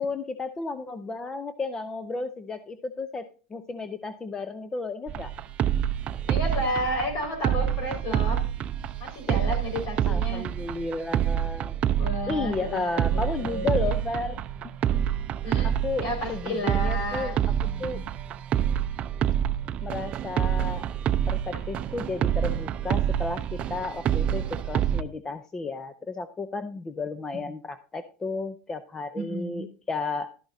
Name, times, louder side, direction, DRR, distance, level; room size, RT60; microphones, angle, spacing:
voice 1, 0.0-5.3 10.1-11.7 12.3-14.4 14.9-15.1 15.6-17.5 17.8-18.0 19.8-20.9 21.3-30.3, left 3 dB, 15° left, 10 dB, 0.6 m, -33 dB
sound 1, 5.1-25.0, right 10 dB, 30° right, 0.6 m, -27 dB
voice 2, 6.3-8.4 9.0-10.4 12.0-12.8 13.1-13.7 15.4-15.7 16.0-18.0 29.1-29.7, equal, 50° left, 4 dB, 4.9 m, -32 dB
12.5 x 10.5 x 2.7 m, 0.37 s
supercardioid pair, 150°, 4 cm